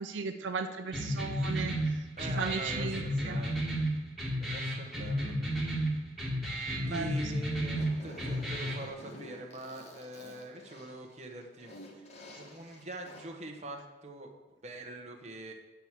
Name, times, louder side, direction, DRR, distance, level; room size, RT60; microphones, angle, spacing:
voice 1, 0.0-3.4 6.8-7.3, right 5 dB, 80° right, 7 dB, 0.5 m, -37 dB
sound 1, 0.9-8.9, equal, ahead, 1.9 m, -33 dB
voice 2, 2.2-3.5 4.4-5.3 6.9-12.1 12.4-14.3 14.6-15.5, right 1 dB, 35° right, 2 dB, 1.2 m, -44 dB
Fart, 7.6-13.4, left 1 dB, 35° left, 1.5 m, -50 dB
8.9 x 4.7 x 7.4 m, 1.1 s
head